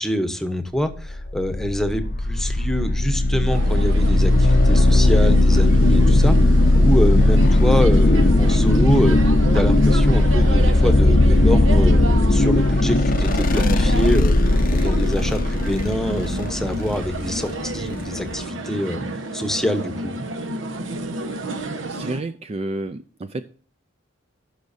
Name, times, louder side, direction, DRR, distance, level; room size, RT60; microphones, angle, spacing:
voice 1, 0.0-9.2 9.5-12.0 12.3-14.3 14.7-19.0 19.3-20.1, equal, ahead, 8 dB, 0.9 m, -25 dB
sound 1, 1.0-18.4, left 1 dB, 45° left, 0.6 m, -17 dB
sound 2, 3.5-22.2, right 2 dB, 80° right, 1.1 m, -31 dB
voice 2, 21.9-23.6, right 2 dB, 30° right, 11 dB, 0.4 m, -30 dB
15.0 x 6.3 x 2.7 m, 0.43 s
head